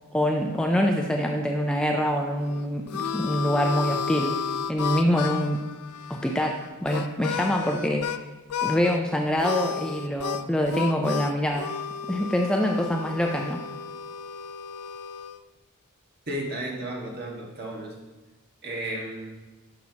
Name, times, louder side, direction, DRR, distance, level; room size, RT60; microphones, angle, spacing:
voice 1, 0.1-4.3 4.7-5.6 6.1-8.1 8.6-11.7 12.1-13.6, equal, 5° left, 1 dB, 0.4 m, -25 dB
Harmonica, 2.4-8.2 8.5-9.0 9.4-15.4, left 6 dB, 85° left, 0.4 m, -32 dB
voice 2, 16.3-17.9 18.6-19.3, right 1 dB, 45° right, -2 dB, 1.6 m, -33 dB
10.5 x 5.7 x 2.9 m, 1.2 s
head